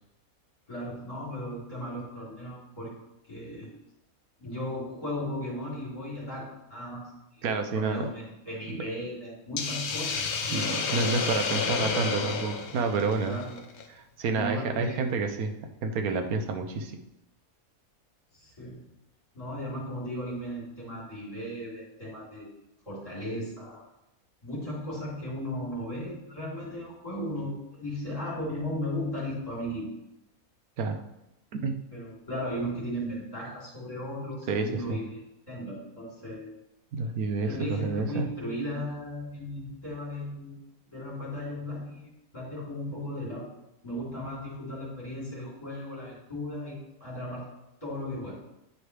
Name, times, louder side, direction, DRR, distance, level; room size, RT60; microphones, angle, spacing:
voice 1, 0.7-2.9 3.3-3.7 4.4-11.0 13.3-13.6 14.2-15.0 18.4-18.9 19.3-22.5 22.8-23.8 24.4-29.9 31.9-35.2 35.5-36.5 37.4-40.6 40.9-43.5 43.8-47.5 47.8-48.4, left 1 dB, 25° left, -7 dB, 3.1 m, -36 dB
voice 2, 7.4-8.1 8.7-8.8 10.5-13.4 13.9-15.5 15.8-17.0 30.8-31.0 31.6-31.8 34.5-35.0 36.9-38.3, right 4 dB, 85° right, 6 dB, 1.2 m, -29 dB
Hiss, 9.6-13.8, left 5 dB, 85° left, 1.3 m, -31 dB
9.8 x 4.6 x 3.3 m, 0.89 s
omnidirectional pair, 1.5 m